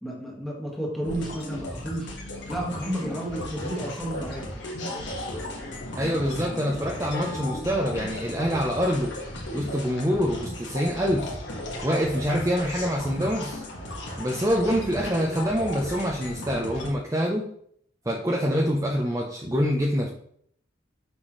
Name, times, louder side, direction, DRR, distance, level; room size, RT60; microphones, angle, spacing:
voice 1, 0.0-2.2 2.5-4.5, right 1 dB, ahead, -2 dB, 1.4 m, -32 dB
sound 1, 1.0-16.9, left 1 dB, 65° left, 1.7 m, -35 dB
voice 2, 5.9-9.1 9.5-11.3 11.8-13.6 14.2-17.5 18.1-20.1, equal, 15° right, -1 dB, 0.6 m, -25 dB
6.2 x 6.2 x 3.0 m, 0.65 s
head